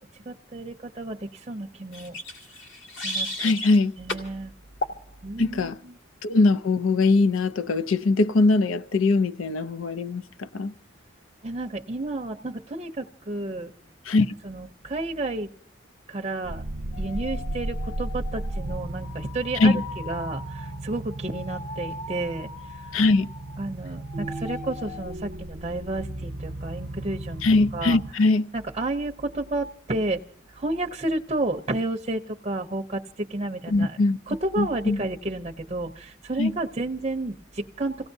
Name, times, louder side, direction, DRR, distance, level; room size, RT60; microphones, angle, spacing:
voice 1, 0.3-2.2 3.0-3.6 4.0-4.5 5.2-5.9 11.4-13.7 14.2-15.5 16.1-16.6 17.0-22.9 23.6-27.4 27.7-28.0 28.5-30.2 30.5-34.0 34.3-38.1, right 2 dB, 30° right, 0.6 m, -31 dB
sound 1, 1.9-3.8 4.1-4.3 4.8-5.0, left 1 dB, 60° left, 2.2 m, -32 dB
voice 2, 3.4-3.9 5.4-5.8 6.2-10.7 14.1-14.3 19.6-19.8 22.9-23.3 27.4-28.5 33.7-34.2 34.6-35.0 36.4-36.5, left 3 dB, 85° left, 0.6 m, -21 dB
sound 2, 16.4-28.1, right 1 dB, 90° right, 0.8 m, -35 dB
sound 3, 16.9-23.7 24.0-25.1, left 4 dB, 35° left, 0.8 m, -41 dB
28.5 x 17.0 x 2.7 m
head